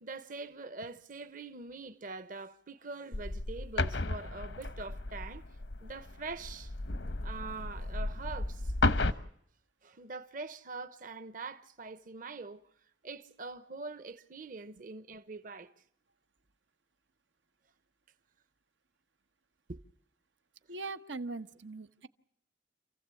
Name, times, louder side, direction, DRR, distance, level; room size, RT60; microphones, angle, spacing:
voice 1, 0.0-5.4 5.8-6.7 7.2-9.2 9.8-12.6 13.0-15.7 19.7-19.8, right 3 dB, 50° right, 0.9 m, -44 dB
sound 1, 3.1-9.1, left 2 dB, 80° left, 1.1 m, -33 dB
voice 2, 20.7-22.1, right 3 dB, 90° right, 1.2 m, -40 dB
28.5 x 15.5 x 8.4 m
head